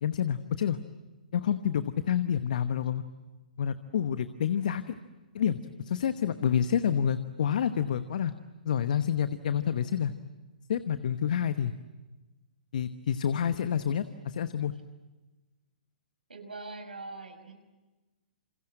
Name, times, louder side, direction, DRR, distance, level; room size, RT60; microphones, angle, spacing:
voice 1, 0.0-0.8 1.3-3.0 3.6-4.9 5.3-8.3 8.6-10.1 10.7-11.7 12.7-14.7, left 8 dB, 60° left, 11 dB, 1.1 m, -28 dB
voice 2, 16.3-17.5, right 3 dB, 80° right, 6 dB, 5.5 m, -42 dB
28.0 x 27.0 x 7.8 m, 1.2 s
figure-of-eight pair, 120°, 5 cm